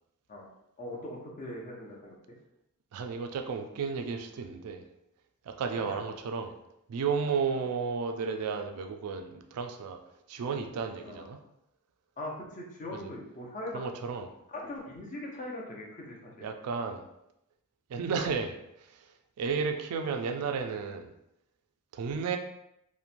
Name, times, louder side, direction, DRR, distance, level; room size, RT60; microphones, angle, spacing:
voice 1, 0.8-2.1 5.7-6.0 6.4-6.5 11.0-11.3 12.2-13.8 14.6-16.5, left 1 dB, 35° left, -1 dB, 0.5 m, -41 dB
voice 2, 2.9-4.8 5.4-6.5 6.9-10.0 10.3-11.4 12.9-13.1 13.7-14.3 16.4-17.1 17.9-19.1 19.4-21.1 21.9-22.4, right 5 dB, 75° right, 6 dB, 0.3 m, -33 dB
2.9 x 2.1 x 2.5 m, 0.81 s
head